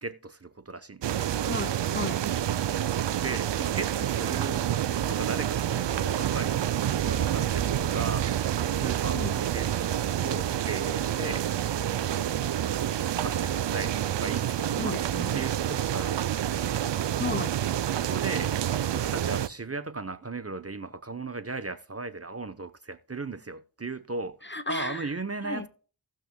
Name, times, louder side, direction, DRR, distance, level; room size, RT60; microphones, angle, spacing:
voice 1, 0.0-1.3 3.2-4.7 5.1-8.3 8.6-11.5 13.1-15.0 15.3-16.6 17.9-25.7, right 3 dB, 30° right, 0.9 m, -37 dB
sound 1, 1.0-19.5, right 10 dB, 60° right, 0.5 m, -28 dB
voice 2, 1.5-2.3 9.1-9.4 14.8-15.4 17.2-17.5 24.4-25.1 25.4-25.7, left 3 dB, 25° left, 0.8 m, -34 dB
18.0 x 6.1 x 2.2 m
cardioid pair, 40°, 49 cm